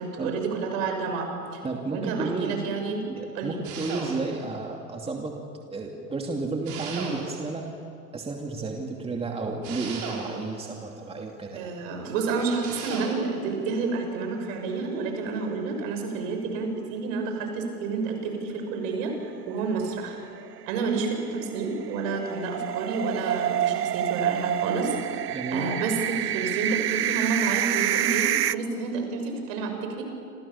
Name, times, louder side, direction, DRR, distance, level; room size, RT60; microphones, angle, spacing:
voice 1, 0.0-1.6 1.9-3.0 3.3-3.6 11.5-20.2 20.7-25.0 25.5-30.0, right 4 dB, 55° right, 4 dB, 7.0 m, -29 dB
voice 2, 1.6-2.6 3.1-5.4 5.7-7.7 8.1-11.7 25.3-25.7, right 3 dB, 10° right, 1 dB, 2.7 m, -32 dB
sound 1, 3.6-4.5 6.7-7.6 9.6-10.7 12.6-13.4, right 5 dB, 40° right, 7.1 m, -36 dB
sound 2, 13.6-14.5 14.9-15.0 15.3-15.4 19.5-28.6, right 12 dB, 80° right, 0.8 m, -28 dB
28.0 x 28.0 x 7.2 m, 2.5 s
hypercardioid pair, 100°, 46 cm